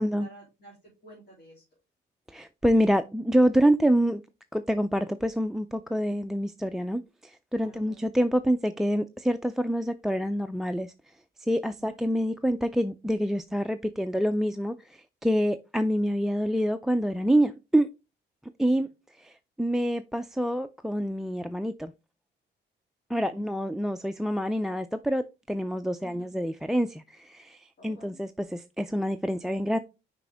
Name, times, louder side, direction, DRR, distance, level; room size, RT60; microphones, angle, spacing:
voice 1, 0.0-1.6 7.6-8.0 11.8-12.0 18.6-18.9 23.2-23.5 26.0-26.3 27.8-28.2, right 1 dB, 50° left, 3.0 m, -52 dB
voice 2, 2.3-4.2 4.5-10.9 11.4-17.9 18.6-18.9 19.2-21.9 23.1-29.8, equal, ahead, 0.3 m, -26 dB
5.9 x 5.0 x 3.4 m
cardioid pair, 90°, 20 cm